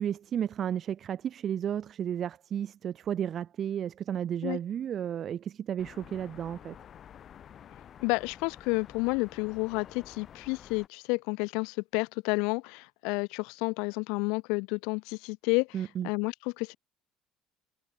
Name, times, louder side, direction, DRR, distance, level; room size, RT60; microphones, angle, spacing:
voice 1, 0.0-6.8 15.7-16.1, right 9 dB, 35° right, 0.4 m, -33 dB
sound 1, 5.8-10.9, left 9 dB, 35° left, 1.1 m, -50 dB
voice 2, 8.0-15.7 16.0-16.8, left 30 dB, 90° left, 0.7 m, -30 dB
cardioid pair, 155°, 0 cm